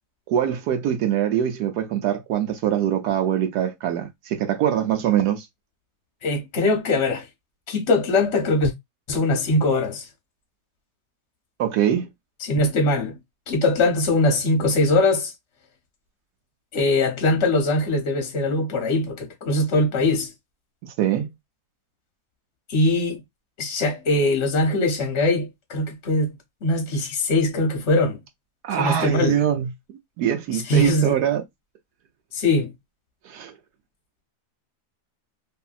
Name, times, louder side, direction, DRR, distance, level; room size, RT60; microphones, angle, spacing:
voice 1, 0.3-5.5 11.6-12.1 20.8-21.3 28.6-29.7 30.2-31.4 33.2-33.5, right 10 dB, 80° right, 1.1 m, -23 dB
voice 2, 6.2-7.2 7.7-8.7 9.1-10.0 12.4-13.2 13.5-15.3 16.7-20.3 22.7-23.2 23.6-26.4 26.6-28.2 28.7-29.4 30.5-31.2 32.3-32.7, left 2 dB, 55° left, 0.9 m, -21 dB
2.7 x 2.6 x 2.3 m
omnidirectional pair, 1.7 m